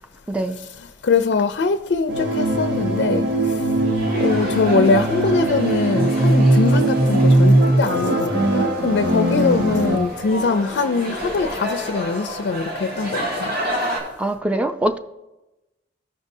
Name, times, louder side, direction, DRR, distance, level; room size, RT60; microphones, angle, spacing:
voice 1, 0.3-0.6 9.3-9.6 14.2-15.0, right 1 dB, 5° right, 0.4 m, -23 dB
voice 2, 1.0-3.8 4.1-13.6, left 4 dB, 70° left, 0.4 m, -22 dB
sound 1, 2.1-10.0, right 1 dB, 90° right, 1.0 m, -19 dB
sound 2, 3.8-14.0, equal, 60° right, 2.2 m, -30 dB
15.0 x 5.3 x 2.7 m
head